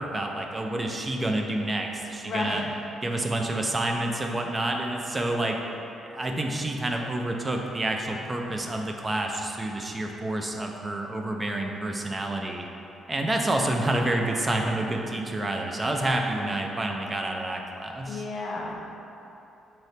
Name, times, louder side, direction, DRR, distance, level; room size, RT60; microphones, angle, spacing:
voice 1, 0.0-2.6 3.0-5.6 6.0-12.6 13.1-18.2, right 1 dB, 25° right, 2 dB, 0.3 m, -28 dB
voice 2, 2.2-2.7 13.3-13.4 18.1-18.8, left 2 dB, 65° left, -2 dB, 0.6 m, -32 dB
3.1 x 2.8 x 4.1 m, 2.9 s
cardioid pair, 90°, 0 cm